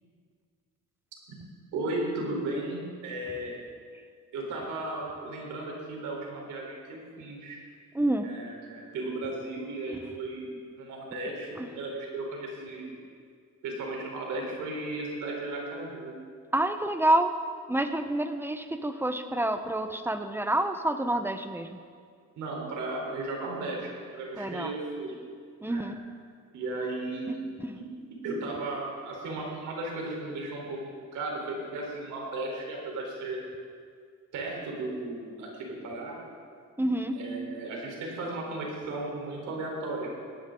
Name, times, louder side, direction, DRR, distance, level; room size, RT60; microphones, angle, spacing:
voice 1, 1.7-3.6 4.3-7.6 8.2-13.0 13.6-16.1 22.4-25.2 25.6-25.8 26.5-27.4 27.7-27.9 28.2-33.5 34.3-36.2 37.1-40.1, right 2 dB, 90° right, -1 dB, 4.2 m, -35 dB
voice 2, 7.9-8.3 11.6-11.7 16.5-17.3 17.7-21.8 24.3-24.7 25.6-26.0 27.6-27.8 36.8-37.1, right 1 dB, 5° right, 8 dB, 1.0 m, -28 dB
18.0 x 14.5 x 3.9 m, 2.1 s
cardioid pair, 90°, 30 cm